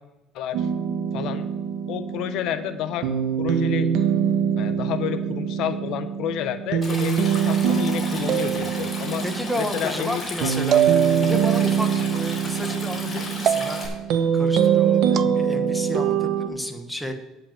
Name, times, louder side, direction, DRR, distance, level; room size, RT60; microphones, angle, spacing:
voice 1, 0.3-0.7 1.1-1.4 1.9-3.1 3.4-3.9 4.6-9.2 9.6-10.5 13.0-13.3, left 10 dB, 65° left, 10 dB, 0.8 m, -30 dB
sound 1, 0.5-16.5, right 7 dB, 65° right, 1.1 m, -24 dB
Stream, 6.8-13.9, left 3 dB, 25° left, 3.2 m, -35 dB
sound 2, 8.3-9.1 10.7-11.7 13.5-14.1 15.1-15.4, right 9 dB, 45° right, 0.3 m, -23 dB
voice 2, 9.1-10.8 11.2-13.8 14.3-17.1, equal, ahead, 5 dB, 1.1 m, -31 dB
10.0 x 5.3 x 7.3 m, 1.0 s
cardioid pair, 125°, 0 cm